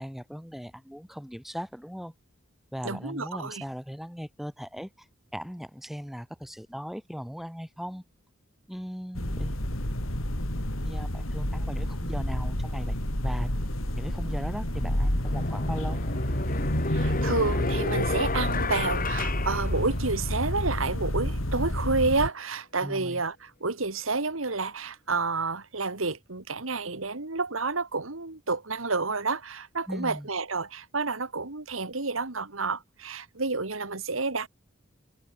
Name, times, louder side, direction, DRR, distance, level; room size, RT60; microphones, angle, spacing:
voice 1, 0.0-2.1 2.7-5.1 5.3-8.0 8.7-9.6 10.8-13.0 13.2-13.5 14.0-16.0 22.8-23.2 29.9-30.3, equal, ahead, 4.3 m, -38 dB
voice 2, 2.8-3.6 16.9-34.5, right 3 dB, 80° right, 2.3 m, -30 dB
sound 1, 9.1-22.3, equal, 90° left, 5.6 m, -29 dB
sound 2, 14.5-14.6 15.2-20.4, left 3 dB, 45° left, 7.3 m, -32 dB
head